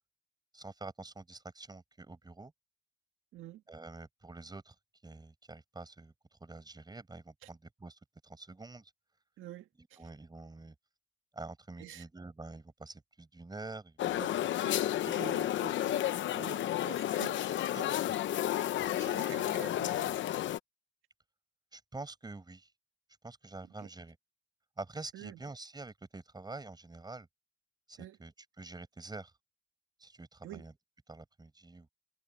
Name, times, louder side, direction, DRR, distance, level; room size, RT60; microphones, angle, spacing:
voice 1, 0.5-2.5 3.7-4.7 5.0-6.1 6.4-8.9 10.0-10.7 11.3-14.3 15.0-15.1 21.7-22.7 23.2-24.2 24.8-27.3 27.9-28.3 28.6-29.3 30.0-30.7 31.1-31.9, right 3 dB, 20° right, 6.8 m, -47 dB
voice 2, 3.3-3.6 7.4-7.5 9.4-10.0 11.8-12.0 14.2-14.3 14.6-18.0 19.0-20.2 23.6-23.9 25.1-25.4 28.0-28.2 30.4-30.7, right 14 dB, 85° right, 1.7 m, -48 dB
sound 1, 14.0-20.6, left 12 dB, 70° left, 0.9 m, -32 dB
cardioid pair, 90°, 20 cm